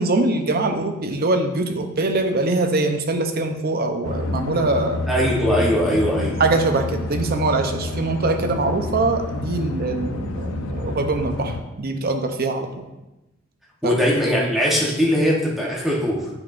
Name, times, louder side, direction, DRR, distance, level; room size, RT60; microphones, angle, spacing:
voice 1, 0.0-5.0 6.4-12.8 13.8-14.0, right 2 dB, 45° right, 6 dB, 0.7 m, -23 dB
sound 1, 4.0-11.6, left 2 dB, 85° left, 0.6 m, -28 dB
voice 2, 5.1-6.4 13.8-16.3, equal, ahead, -4 dB, 1.0 m, -20 dB
8.8 x 6.1 x 2.6 m, 0.98 s
head